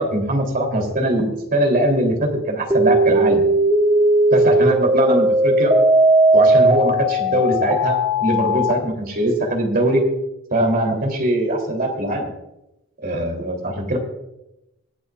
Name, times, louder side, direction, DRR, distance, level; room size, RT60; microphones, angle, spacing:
voice 1, 0.0-3.4 4.3-5.7 6.3-10.1 10.5-12.3 13.0-14.0, right 1 dB, 45° right, 1 dB, 3.3 m, -21 dB
sound 1, 2.7-8.7, right 1 dB, 15° right, 1.6 m, -17 dB
26.0 x 8.6 x 2.5 m, 0.90 s
head